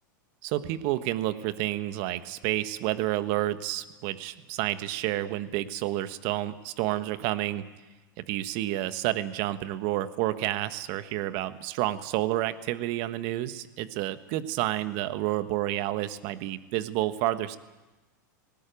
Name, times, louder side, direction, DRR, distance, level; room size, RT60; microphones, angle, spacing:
voice 1, 0.4-7.7 8.2-17.6, right 15 dB, 55° right, 12 dB, 1.4 m, -30 dB
19.0 x 18.5 x 9.3 m, 1.1 s
hypercardioid pair, 105°, 11 cm